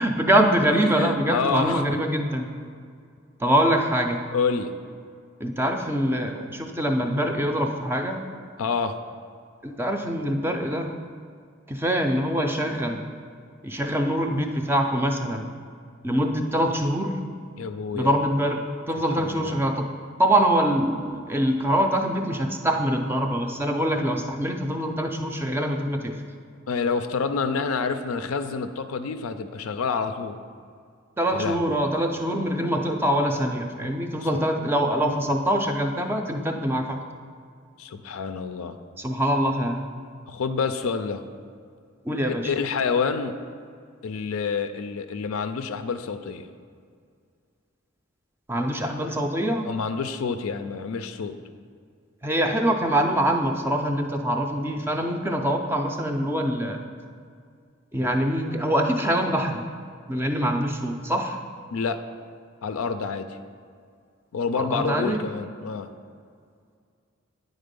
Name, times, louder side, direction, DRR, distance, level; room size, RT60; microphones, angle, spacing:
voice 1, 0.0-2.5 3.4-4.2 5.4-8.2 9.6-10.9 11.7-13.0 13.6-15.5 16.0-17.1 17.9-19.9 20.2-26.2 31.2-37.0 39.0-39.8 42.1-42.5 48.5-49.7 52.2-56.8 57.9-59.6 60.1-61.4 64.6-65.2, right 1 dB, 10° right, 4 dB, 0.4 m, -24 dB
voice 2, 0.9-2.0 4.3-4.7 8.6-9.0 17.6-18.1 19.1-19.6 26.7-30.4 31.3-31.8 34.2-34.4 37.8-38.8 40.3-41.2 42.2-43.4 44.0-46.5 49.6-51.4 61.7-62.0 62.6-63.4 64.3-65.9, left 5 dB, 90° left, 9 dB, 0.4 m, -28 dB
9.4 x 4.0 x 5.2 m, 2.2 s
head